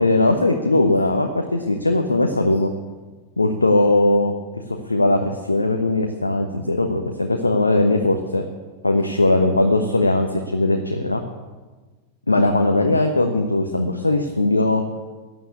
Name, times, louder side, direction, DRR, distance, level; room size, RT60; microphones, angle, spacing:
voice 1, 0.0-2.7 3.4-4.3 4.9-8.4 8.8-11.2 12.3-14.8, left 2 dB, 80° left, 4 dB, 1.2 m, -19 dB
15.0 x 9.4 x 9.7 m, 1.3 s
figure-of-eight pair, 90°, 0 cm